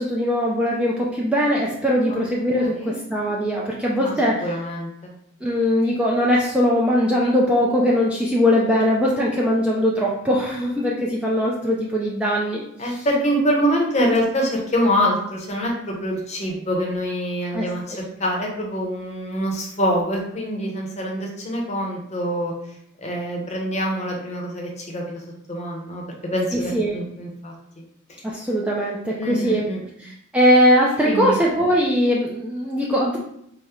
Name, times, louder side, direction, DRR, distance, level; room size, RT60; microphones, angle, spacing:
voice 1, 0.0-4.5 5.4-13.0 17.5-17.7 26.5-27.0 28.2-29.7 30.0-33.2, equal, 5° right, -4 dB, 0.3 m, -20 dB
voice 2, 2.5-2.9 4.0-5.1 12.8-22.5 23.0-25.2 25.5-27.5 29.2-29.8 31.0-31.4, equal, 30° left, -1 dB, 0.7 m, -25 dB
4.2 x 2.0 x 3.6 m, 0.74 s
head